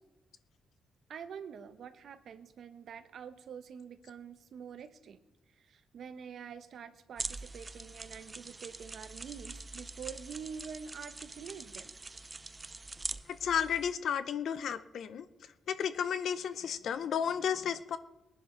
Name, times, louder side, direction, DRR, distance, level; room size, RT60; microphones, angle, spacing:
voice 1, 1.1-5.2 5.6-11.9, right 7 dB, 60° right, 10 dB, 1.0 m, -46 dB
sound 1, 7.2-13.9, right 3 dB, 20° right, 0.5 m, -44 dB
voice 2, 13.3-15.2 15.7-18.0, left 8 dB, 65° left, 12 dB, 0.7 m, -33 dB
19.5 x 10.5 x 4.5 m, 1.0 s
cardioid pair, 145°, 0 cm